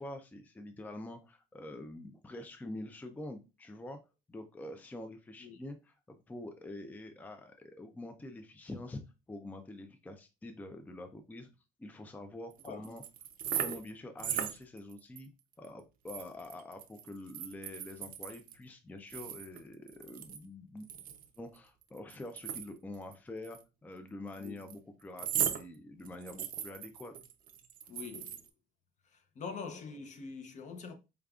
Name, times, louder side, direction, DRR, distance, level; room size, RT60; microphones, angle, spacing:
voice 1, 0.0-4.0 4.3-6.0 6.3-9.0 9.3-11.5 11.8-13.0 13.5-15.3 15.6-20.9 21.4-27.1, left 1 dB, 10° left, 0.4 m, -46 dB
sound 1, 12.5-13.9 14.2-15.2 15.5-15.7 16.1-18.6 19.1-20.4 20.8-23.1 23.4-23.6 24.3-24.7 25.2-25.6 26.1-28.5, right 9 dB, 60° right, 0.5 m, -38 dB
voice 2, 27.9-28.4 29.1-30.9, left 5 dB, 45° left, 0.7 m, -44 dB
4.9 x 2.3 x 2.3 m
cardioid pair, 110°, 17 cm